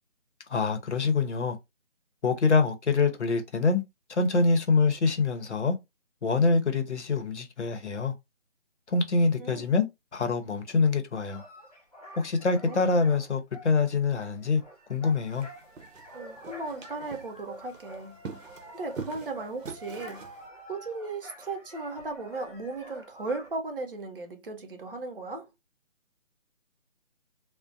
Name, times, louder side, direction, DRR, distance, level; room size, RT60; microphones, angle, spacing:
voice 1, 0.5-1.6 2.2-3.8 4.1-5.8 6.2-8.1 8.9-9.9 10.1-11.4 12.2-14.6 14.9-15.5, left 4 dB, 65° left, 0.7 m, -25 dB
sound 1, 11.3-23.5, equal, 30° left, 0.6 m, -48 dB
sound 2, 15.1-20.5, right 5 dB, 85° right, 0.7 m, -44 dB
voice 2, 16.1-18.2 18.7-20.2 20.7-25.5, right 3 dB, 50° right, 0.5 m, -36 dB
2.4 x 2.1 x 2.5 m
hypercardioid pair, 180°, 38 cm